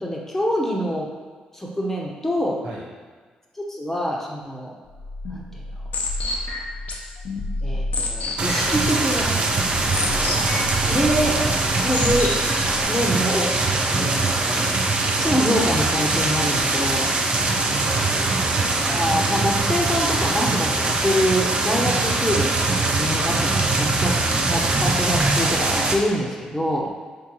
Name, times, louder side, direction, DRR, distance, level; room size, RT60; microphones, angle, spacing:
voice 1, 0.0-1.1 1.5-2.6 3.6-4.7 5.3-5.6 7.6-9.3 10.9-11.4 11.8-14.3 15.2-17.1 18.9-26.9, equal, 15° left, -2 dB, 0.8 m, -25 dB
sound 1, 4.9-12.8, left 2 dB, 65° left, 0.6 m, -30 dB
sound 2, 8.4-25.9, right 3 dB, 40° right, 0.6 m, -22 dB
voice 2, 10.0-10.8 14.4-14.7 17.6-18.5, right 1 dB, 75° right, -5 dB, 1.1 m, -38 dB
3.8 x 3.7 x 3.0 m, 1.5 s
cardioid pair, 70°, 3 cm